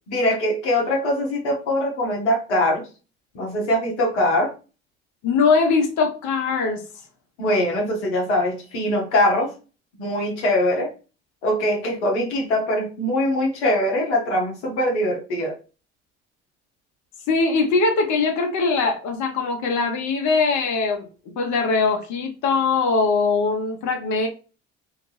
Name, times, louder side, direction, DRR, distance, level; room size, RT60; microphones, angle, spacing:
voice 1, 0.1-2.9 3.3-4.5 7.4-9.5 9.9-10.9 11.4-15.5, left 1 dB, 85° left, 1.0 m, -22 dB
voice 2, 5.2-6.8 17.3-21.0 21.4-24.3, left 4 dB, 60° left, 1.0 m, -21 dB
2.8 x 2.4 x 3.2 m
hypercardioid pair, 65°, 33 cm